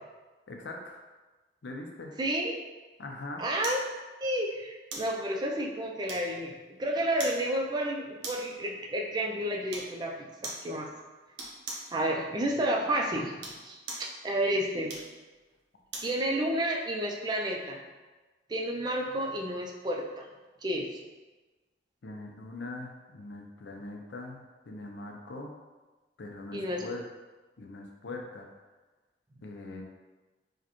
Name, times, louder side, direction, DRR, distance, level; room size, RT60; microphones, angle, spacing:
voice 1, 0.5-1.0 1.6-2.1 3.0-3.4 7.2-7.3 22.0-25.5 26.2-27.0 27.6-28.5 29.4-29.8, left 2 dB, 75° left, 1 dB, 0.5 m, -41 dB
voice 2, 2.2-2.6 3.4-3.8 4.2-10.1 10.4-10.9 11.9-14.9 16.0-17.8 18.5-20.3 20.6-20.9 26.5-26.8, right 1 dB, 25° right, 0 dB, 0.4 m, -31 dB
sound 1, 3.6-3.9 4.9-5.2 6.1-6.5 7.2-7.4 8.2-8.6 9.7-9.9 10.4-10.7 11.4-11.9 13.3-14.1 14.9-16.2 16.6-16.7, right 2 dB, 85° right, 0.8 m, -40 dB
4.7 x 2.2 x 2.9 m, 1.2 s
head